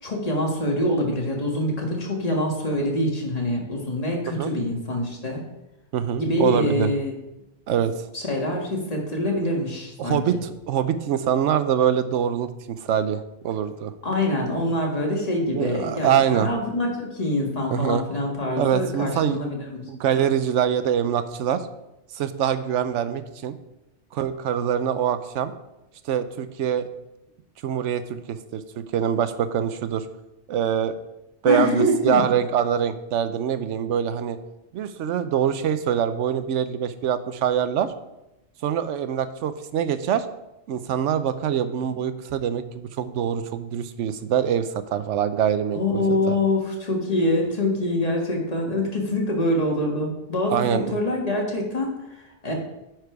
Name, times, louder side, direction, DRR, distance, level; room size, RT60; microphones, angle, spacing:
voice 1, 0.0-5.4 6.2-7.1 8.1-10.4 14.0-19.8 31.4-32.2 45.7-52.5, left 1 dB, 35° left, -1 dB, 1.7 m, -25 dB
voice 2, 5.9-6.9 7.7-7.9 10.0-13.9 15.5-16.5 17.7-18.0 18.6-19.4 19.9-21.6 22.1-23.6 24.1-25.5 26.0-26.9 27.6-30.1 30.5-30.9 31.4-34.4 34.7-37.9 38.6-40.3 40.7-46.4 50.5-50.9, right 9 dB, 85° right, 11 dB, 0.9 m, -24 dB
9.8 x 4.7 x 4.6 m, 0.92 s
omnidirectional pair, 1.2 m